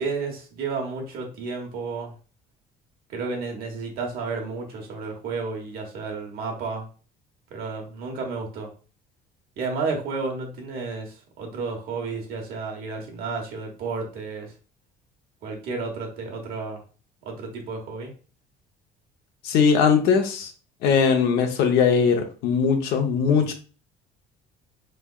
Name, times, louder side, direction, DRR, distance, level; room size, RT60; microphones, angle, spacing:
voice 1, 0.0-2.1 3.1-6.8 7.5-8.7 9.6-14.5 15.4-16.8 17.2-18.1, right 4 dB, 65° right, 1 dB, 1.2 m, -32 dB
voice 2, 19.4-20.5 20.8-23.5, left 6 dB, 75° left, 4 dB, 0.8 m, -20 dB
3.6 x 3.3 x 2.3 m, 0.37 s
cardioid pair, 150°, 16 cm